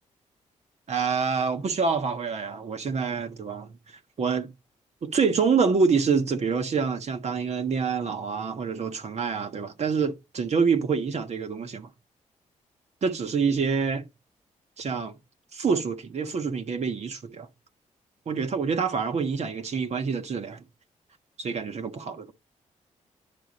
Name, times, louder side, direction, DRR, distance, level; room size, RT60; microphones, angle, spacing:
voice 1, 0.9-4.5 5.0-11.9 13.0-14.1 14.8-15.1 15.5-17.5 18.3-20.6 21.4-22.3, right 5 dB, 55° right, 1.3 m, -26 dB
10.5 x 4.6 x 5.2 m
cardioid pair, 85°, 13 cm